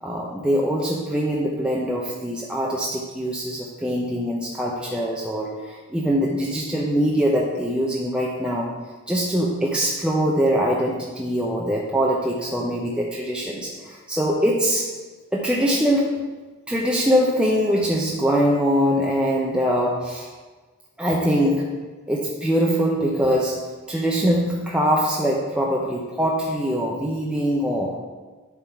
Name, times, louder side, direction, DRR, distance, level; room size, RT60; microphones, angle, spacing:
voice 1, 0.0-8.7 9.1-14.9 15.3-16.2 16.7-20.3 21.0-21.7 22.1-28.0, equal, 5° right, -3 dB, 0.6 m, -23 dB
11.0 x 3.7 x 4.5 m, 1.3 s
head